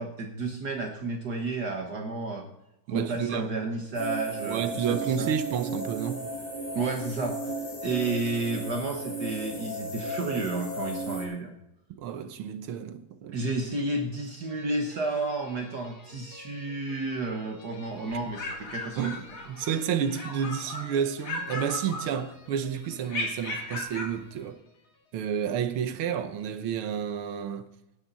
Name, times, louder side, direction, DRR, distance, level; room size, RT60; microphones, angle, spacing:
voice 1, 0.0-2.5 2.9-5.3 6.7-7.4 7.8-11.5 13.3-19.1, right 3 dB, 55° right, 1.7 m, -31 dB
voice 2, 2.9-3.5 4.4-6.3 11.9-13.5 19.0-19.2 19.5-24.6 25.1-27.7, right 8 dB, 85° right, 1.9 m, -30 dB
sound 1, 3.9-11.2, right 2 dB, 5° left, 4.1 m, -35 dB
sound 2, 14.5-25.2, left 3 dB, 75° left, 2.8 m, -53 dB
sound 3, 18.1-19.8 20.1-20.9 21.2-22.5 23.1-24.2, left 2 dB, 40° left, 2.3 m, -36 dB
18.0 x 10.0 x 4.1 m
omnidirectional pair, 2.3 m